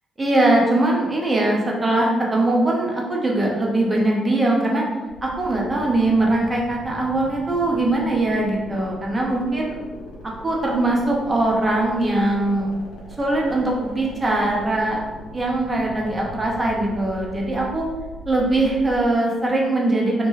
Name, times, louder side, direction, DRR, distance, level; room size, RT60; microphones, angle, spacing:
voice 1, 0.2-4.8 5.2-9.8 10.2-12.7 13.2-15.0 15.3-17.8 18.3-20.3, right 2 dB, 30° right, -2 dB, 0.8 m, -21 dB
sound 1, 5.1-19.0, left 2 dB, 85° left, 0.7 m, -40 dB
2.9 x 2.2 x 3.1 m, 1.3 s
supercardioid pair, 50°, 0 cm